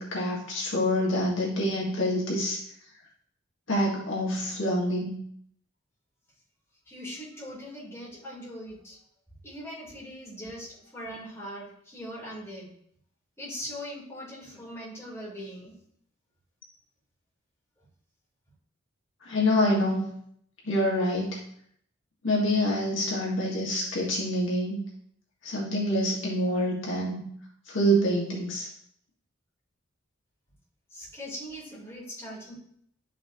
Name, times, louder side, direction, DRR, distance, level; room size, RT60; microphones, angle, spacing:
voice 1, 0.0-2.6 3.7-5.1 19.3-20.1 20.7-21.4 22.2-24.8 25.4-27.2 27.7-28.7, equal, 70° left, -4 dB, 1.8 m, -26 dB
voice 2, 6.9-9.0 9.4-12.7 13.4-15.7 30.9-32.5, equal, 15° left, -8 dB, 3.4 m, -40 dB
11.5 x 6.0 x 2.9 m, 0.68 s
head